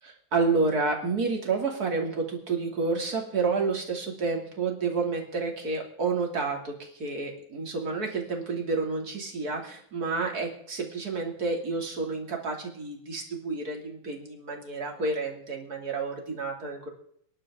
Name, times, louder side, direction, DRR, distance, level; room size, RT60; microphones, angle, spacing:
voice 1, 0.0-16.9, right 4 dB, 30° right, 1 dB, 2.9 m, -30 dB
24.5 x 11.5 x 3.7 m, 0.66 s
omnidirectional pair, 3.4 m